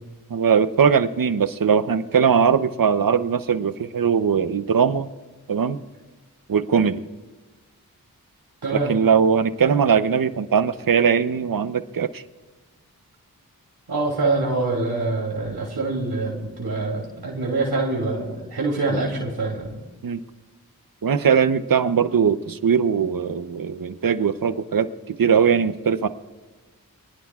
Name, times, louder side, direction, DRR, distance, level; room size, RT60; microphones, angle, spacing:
voice 1, 0.3-5.1 5.5-5.8 6.5-7.0 8.7-12.2 20.0-20.2 21.0-26.1, right 6 dB, 65° right, 12 dB, 0.8 m, -20 dB
voice 2, 8.6-8.9 13.9-19.7, right 3 dB, 85° right, -2 dB, 3.1 m, -25 dB
25.5 x 18.5 x 2.4 m, 1.3 s
cardioid pair, 45°, 37 cm